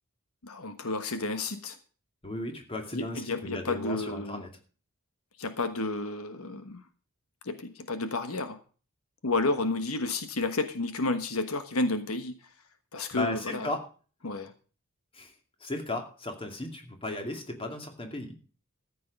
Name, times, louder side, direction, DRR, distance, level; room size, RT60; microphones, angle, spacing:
voice 1, 0.4-1.8 2.9-4.4 5.4-6.8 7.4-8.6 9.2-12.3 12.9-13.7 14.2-14.5, left 2 dB, 80° left, 9 dB, 1.3 m, -31 dB
voice 2, 2.2-4.5 13.1-13.8 15.1-15.3 15.6-18.3, left 2 dB, 25° left, 4 dB, 2.4 m, -35 dB
14.0 x 8.5 x 5.3 m, 0.39 s
head